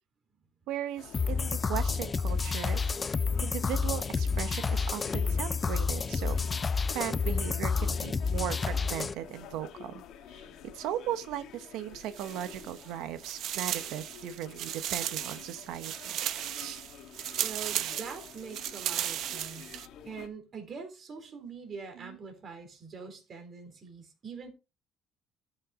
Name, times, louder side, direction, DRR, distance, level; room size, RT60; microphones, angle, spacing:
voice 1, 0.7-2.9 3.4-6.4 6.9-10.0 10.3-16.1 16.6-16.8 21.9-22.2, right 11 dB, 80° right, 1.0 m, -37 dB
sound 1, 1.0-20.3, left 8 dB, 65° left, 1.3 m, -49 dB
sound 2, 1.1-9.1, left 5 dB, 20° left, 0.4 m, -29 dB
sound 3, 12.0-12.9 13.2-19.9, right 11 dB, 60° right, 0.7 m, -36 dB
voice 2, 17.4-19.8 20.0-24.5, right 5 dB, 35° right, 3.9 m, -43 dB
13.5 x 6.6 x 3.7 m
cardioid pair, 155°, 0 cm